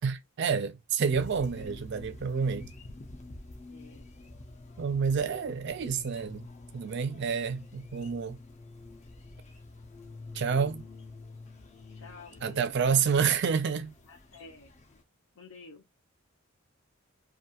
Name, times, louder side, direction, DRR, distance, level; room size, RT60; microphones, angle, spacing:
voice 1, 0.0-2.7 4.8-6.5 6.7-8.4 10.3-10.8 12.4-13.9, right 6 dB, 50° right, 0.4 m, -29 dB
sound 1, 1.1-15.0, left 2 dB, 30° left, 0.4 m, -48 dB
voice 2, 3.7-4.1 11.9-12.7 14.1-14.7 15.4-15.8, left 3 dB, 85° left, 0.7 m, -50 dB
2.4 x 2.3 x 2.8 m
head